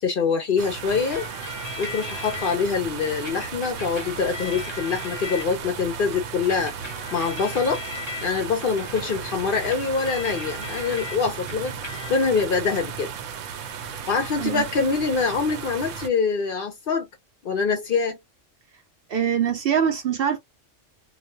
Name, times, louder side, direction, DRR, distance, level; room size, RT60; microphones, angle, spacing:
voice 1, 0.0-1.3 1.8-6.7 7.1-7.8 8.2-11.7 12.1-13.1 14.1-17.1 17.4-18.2, left 5 dB, 60° left, 0.6 m, -24 dB
sound 1, 0.6-16.1, right 7 dB, 85° right, 0.9 m, -35 dB
sound 2, 1.1-2.6 3.3-5.8 6.5-11.2 11.5-12.4, left 3 dB, 25° left, 0.8 m, -38 dB
voice 2, 19.1-20.4, right 8 dB, 60° right, 0.6 m, -23 dB
2.4 x 2.2 x 2.6 m
omnidirectional pair, 1.3 m